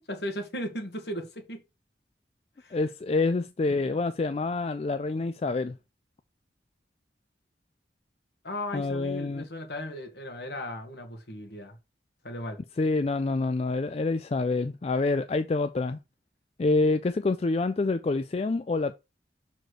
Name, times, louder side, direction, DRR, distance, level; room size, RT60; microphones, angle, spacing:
voice 1, 0.1-1.6 2.6-2.8 8.4-11.8 12.2-12.6, left 1 dB, 65° left, 1.6 m, -36 dB
voice 2, 2.7-5.7 8.7-9.4 12.8-16.0 16.6-18.9, left 3 dB, 35° left, 0.3 m, -27 dB
6.5 x 4.3 x 4.6 m
head